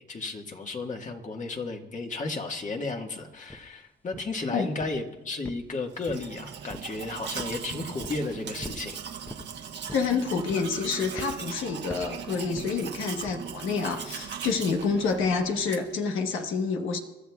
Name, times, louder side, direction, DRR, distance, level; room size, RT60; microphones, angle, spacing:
voice 1, 0.1-9.0, left 3 dB, 40° left, 3 dB, 1.7 m, -34 dB
sound 1, 3.5-3.6 4.1-4.4 4.8-5.1 5.4-6.3 6.7-7.0 7.4-7.6 8.0-8.2 8.6-8.9 9.3-9.5 9.9-10.2 10.5-10.8 11.2-11.4 11.9-12.2 12.6-12.7 13.3-13.4, left 1 dB, 10° left, 0.9 m, -41 dB
Domestic sounds home sounds, 5.9-16.0, right 7 dB, 60° right, 1.3 m, -39 dB
voice 2, 9.9-17.0, left 5 dB, 80° left, 4 dB, 1.3 m, -28 dB
28.0 x 12.5 x 2.4 m, 1.1 s
cardioid pair, 90°, 20 cm